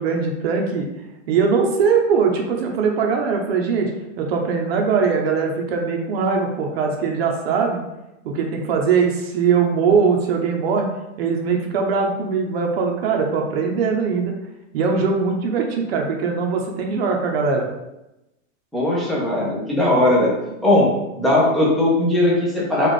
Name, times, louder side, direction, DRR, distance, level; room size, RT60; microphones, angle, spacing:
voice 1, 0.0-7.8 8.2-10.9 11.2-14.3 14.7-17.7, right 5 dB, 45° right, 2 dB, 0.7 m, -21 dB
voice 2, 18.7-20.3 20.6-22.9, left 1 dB, ahead, -7 dB, 0.5 m, -18 dB
4.1 x 2.5 x 4.7 m, 0.94 s
supercardioid pair, 155°, 41 cm